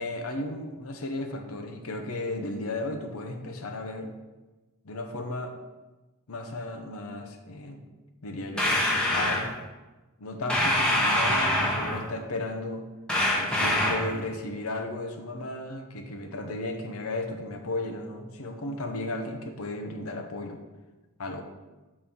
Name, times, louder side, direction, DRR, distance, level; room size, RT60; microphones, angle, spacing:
voice 1, 0.0-4.1 4.8-5.5 6.3-7.8 8.2-9.5 10.2-12.8 13.4-20.6 21.2-21.4, left 2 dB, 80° left, 4 dB, 0.8 m, -34 dB
sound 1, 8.6-9.5 10.5-12.1 13.1-14.1, left 1 dB, 5° left, 0.9 m, -24 dB
7.2 x 4.3 x 3.7 m, 1.2 s
head